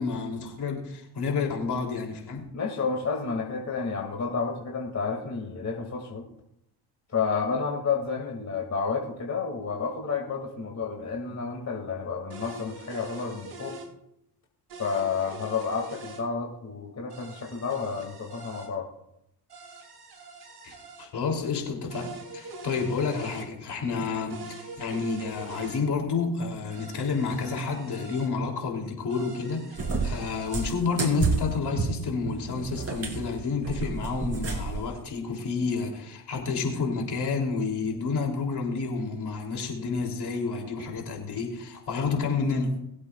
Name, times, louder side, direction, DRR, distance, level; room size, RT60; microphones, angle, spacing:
voice 1, 0.0-2.4 20.6-42.7, left 4 dB, 50° left, 2 dB, 3.2 m, -30 dB
voice 2, 2.5-6.2 7.1-13.8 14.8-18.9, left 5 dB, 30° left, 0 dB, 2.5 m, -30 dB
sound 1, 12.3-13.9 14.7-16.2 17.1-18.7 19.5-21.1 21.9-23.5 24.3-25.8 26.7-28.3 29.1-30.7, right 2 dB, 50° right, 2.9 m, -43 dB
Cat, 29.8-34.9, right 4 dB, 30° right, 3.1 m, -30 dB
21.0 x 8.1 x 2.4 m, 0.80 s
hypercardioid pair, 60°, 49 cm